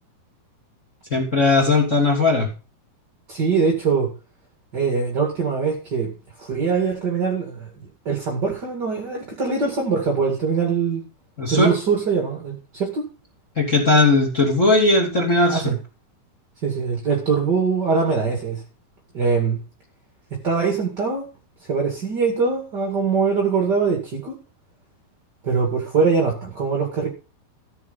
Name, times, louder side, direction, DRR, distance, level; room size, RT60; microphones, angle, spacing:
voice 1, 1.1-2.5 11.4-11.7 13.6-15.6, left 3 dB, 20° left, 1 dB, 2.2 m, -18 dB
voice 2, 3.3-4.1 4.7-6.1 6.4-11.0 11.5-13.1 15.5-15.8 16.6-18.6 19.1-19.6 20.3-21.3 21.7-24.4 25.4-27.1, right 5 dB, 40° right, 0 dB, 1.6 m, -22 dB
14.0 x 6.8 x 5.4 m, 0.34 s
omnidirectional pair, 5.4 m